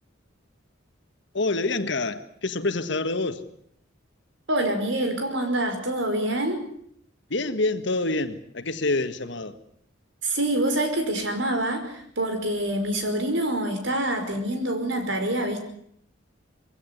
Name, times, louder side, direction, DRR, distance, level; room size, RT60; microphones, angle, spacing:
voice 1, 1.3-3.4 7.3-9.6, left 2 dB, 60° left, 9 dB, 1.7 m, -27 dB
voice 2, 4.5-6.6 10.2-15.6, right 1 dB, 65° right, 6 dB, 5.3 m, -26 dB
22.5 x 16.5 x 9.8 m, 0.67 s
head